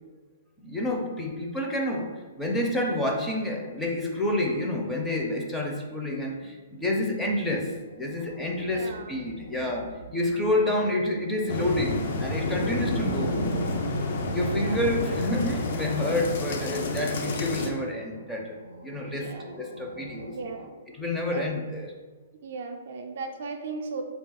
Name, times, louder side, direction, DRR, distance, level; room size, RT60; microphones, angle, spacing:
voice 1, 0.6-13.4 14.3-19.3 19.6-20.3 20.9-21.9, left 1 dB, 5° left, 0 dB, 0.5 m, -29 dB
sound 1, 7.6-20.7, equal, 75° left, 1.1 m, -39 dB
voice 2, 8.6-9.3 14.4-14.8 19.0-19.5 20.2-20.8 21.3-21.5 22.4-24.0, right 4 dB, 60° right, 4 dB, 0.5 m, -37 dB
sound 2, 11.5-17.7, left 2 dB, 55° left, 0.5 m, -30 dB
3.4 x 2.4 x 4.1 m, 1.3 s
hypercardioid pair, 135°, 0 cm